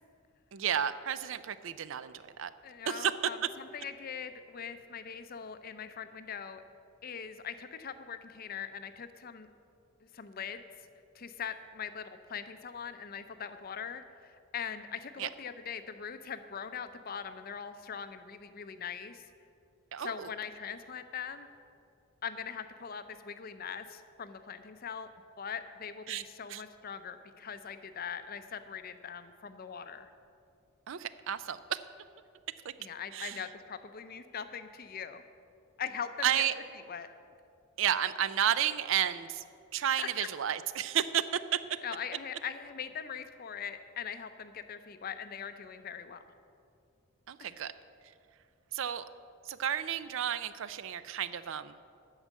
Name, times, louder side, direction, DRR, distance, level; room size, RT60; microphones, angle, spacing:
voice 1, 0.5-2.5 2.9-3.1 15.2-15.3 19.9-20.3 26.1-26.2 26.5-26.6 30.9-31.8 32.6-32.7 33.1-33.4 36.2-36.5 37.8-39.4 39.7-41.6 47.3-47.7 48.7-49.0 49.5-51.7, right 9 dB, 65° right, 14 dB, 0.4 m, -32 dB
voice 2, 2.6-6.6 7.0-9.5 10.1-10.6 11.1-19.3 20.0-21.5 22.2-25.1 25.4-30.1 32.8-35.2 35.8-36.4 36.7-37.1 40.0-40.3 41.8-46.2 47.5-47.6, left 7 dB, 45° left, 11 dB, 0.5 m, -41 dB
8.9 x 6.4 x 8.2 m, 2.5 s
head